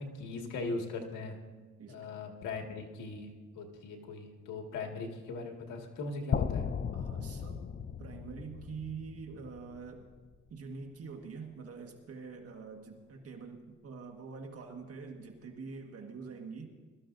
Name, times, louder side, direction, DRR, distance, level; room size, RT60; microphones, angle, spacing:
voice 1, 0.0-1.4 1.9-6.7, left 3 dB, 85° left, 2 dB, 2.1 m, -40 dB
sound 1, 6.3-10.4, left 7 dB, 30° left, 0.5 m, -36 dB
voice 2, 6.9-7.7 8.0-10.1 10.5-16.7, right 5 dB, 50° right, 3 dB, 1.6 m, -45 dB
21.5 x 13.5 x 2.7 m, 1.4 s
cardioid pair, 90°, 30 cm